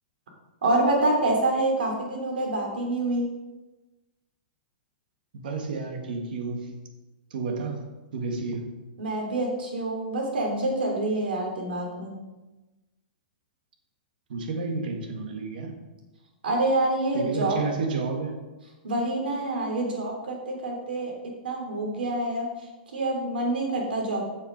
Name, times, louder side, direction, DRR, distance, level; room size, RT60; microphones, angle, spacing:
voice 1, 0.6-3.3 9.0-12.1 16.4-17.6 18.8-22.5 22.9-24.3, right 2 dB, 80° right, 0 dB, 3.1 m, -26 dB
voice 2, 5.3-6.9 7.3-7.9 8.1-8.8 14.3-15.8 17.1-18.4, right 4 dB, 65° right, 4 dB, 1.8 m, -31 dB
7.9 x 6.9 x 5.3 m, 1.1 s
hypercardioid pair, 155°, 5 cm